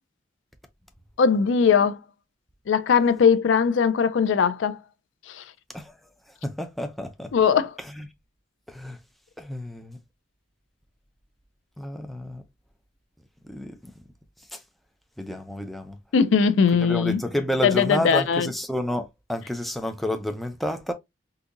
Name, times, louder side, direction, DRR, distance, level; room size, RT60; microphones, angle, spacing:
voice 1, 1.2-2.0 2.7-4.8 5.3-5.4 7.3-7.7 16.1-17.2 17.6-18.5, left 6 dB, 75° left, 0.4 m, -20 dB
voice 2, 6.4-7.3 8.0-8.1 8.7-9.0 9.4-10.0 11.8-12.4 13.4-13.8 14.5-14.6 15.2-16.0 16.8-20.9, left 1 dB, ahead, 0.5 m, -30 dB
3.8 x 2.7 x 2.4 m
head